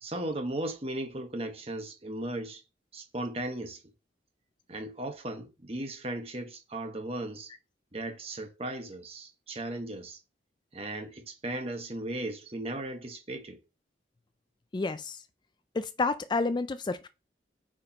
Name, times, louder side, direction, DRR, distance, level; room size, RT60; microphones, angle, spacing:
voice 1, 0.0-2.6 2.9-3.8 4.7-7.5 7.9-10.2 10.7-13.6, right 1 dB, 35° right, 1.3 m, -36 dB
voice 2, 14.7-15.2 15.7-17.1, left 3 dB, 25° left, 0.3 m, -30 dB
8.6 x 5.0 x 2.9 m
head